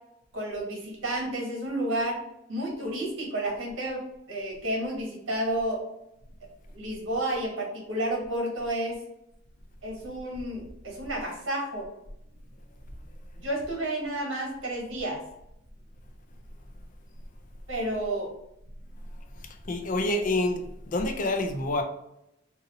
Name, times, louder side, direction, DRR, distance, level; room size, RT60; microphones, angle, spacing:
voice 1, 0.3-2.2 2.5-4.0 4.3-5.8 6.7-9.0 9.8-11.9 13.4-15.2 17.7-18.3, right 1 dB, 85° right, 1.4 m, -31 dB
voice 2, 19.4-21.8, left 2 dB, 40° left, 0.4 m, -28 dB
2.7 x 2.6 x 4.0 m
head